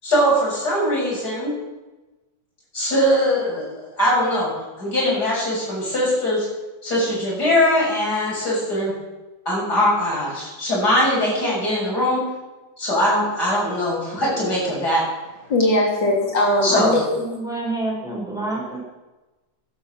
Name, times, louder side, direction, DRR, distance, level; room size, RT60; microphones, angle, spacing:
voice 1, 0.0-1.5 2.7-3.7 4.0-4.5 4.8-6.5 6.8-8.9 9.5-12.2 12.8-15.0 16.6-16.9, left 1 dB, 60° left, -5 dB, 7.5 m, -21 dB
voice 2, 15.5-17.2, left 1 dB, 75° left, 0 dB, 3.9 m, -20 dB
voice 3, 16.7-18.8, right 2 dB, ahead, -5 dB, 5.9 m, -28 dB
15.0 x 11.5 x 6.5 m, 1.1 s
omnidirectional pair, 2.0 m